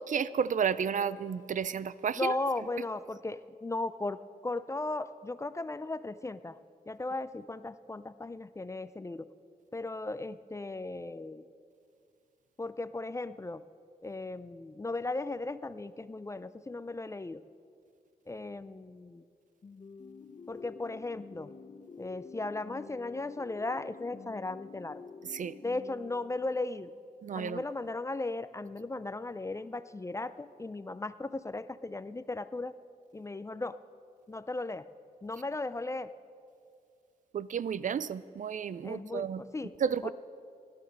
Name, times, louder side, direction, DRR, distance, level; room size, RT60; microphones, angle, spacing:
voice 1, 0.0-2.3 25.3-25.6 27.2-27.6 37.3-39.4 39.8-40.1, right 7 dB, 55° right, 17 dB, 0.4 m, -32 dB
voice 2, 2.2-6.6 6.9-9.3 9.7-11.5 12.6-13.6 14.0-17.4 18.3-19.2 20.5-21.5 22.0-25.0 25.6-26.9 27.3-32.7 33.1-33.8 34.3-34.9 35.2-36.1 38.8-39.7 40.0-40.1, left 2 dB, 20° left, 14 dB, 0.4 m, -36 dB
sound 1, 19.6-26.8, left 5 dB, 40° left, 0.7 m, -49 dB
16.5 x 11.5 x 6.6 m, 2.3 s
wide cardioid pair, 125°, 16 cm